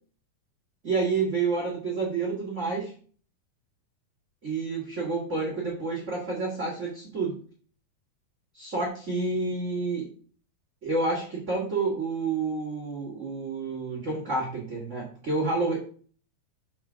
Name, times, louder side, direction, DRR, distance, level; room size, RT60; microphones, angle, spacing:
voice 1, 0.8-2.9 4.4-7.3 8.5-10.1 10.8-15.8, right 3 dB, 25° right, -3 dB, 1.7 m, -29 dB
6.4 x 4.8 x 6.3 m, 0.43 s
omnidirectional pair, 4.3 m